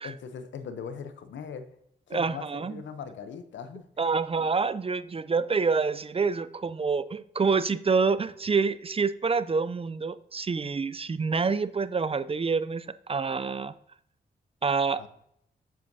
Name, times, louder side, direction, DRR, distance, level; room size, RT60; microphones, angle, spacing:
voice 1, 0.0-1.7 2.1-3.9 15.0-15.1, left 6 dB, 85° left, 11 dB, 0.7 m, -40 dB
voice 2, 2.1-2.8 4.0-13.7 14.6-15.1, right 4 dB, 30° right, 15 dB, 0.4 m, -27 dB
7.8 x 7.4 x 2.7 m, 0.75 s
cardioid pair, 50°, 19 cm